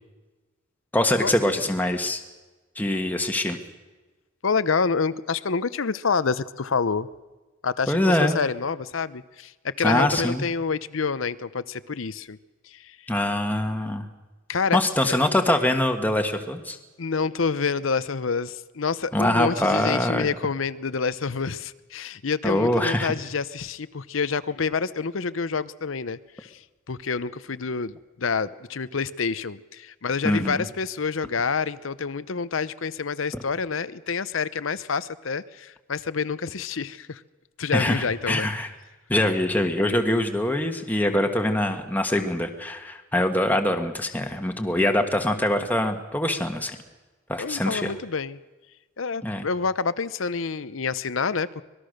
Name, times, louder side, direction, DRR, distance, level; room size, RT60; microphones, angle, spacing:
voice 1, 0.9-2.2 2.7-3.6 7.9-8.4 9.8-10.4 13.1-14.0 14.7-16.8 19.1-20.3 22.4-23.1 30.2-30.6 33.3-33.4 37.7-38.7 39.1-46.8 47.3-47.9 49.2-49.4, left 1 dB, 10° left, 4 dB, 1.5 m, -23 dB
voice 2, 4.4-7.1 7.6-12.4 12.7-13.0 14.5-15.2 17.0-26.6 26.9-37.2 37.6-38.5 47.4-48.4 49.0-51.6, left 5 dB, 70° left, 16 dB, 0.7 m, -28 dB
25.0 x 20.0 x 6.6 m, 1.2 s
head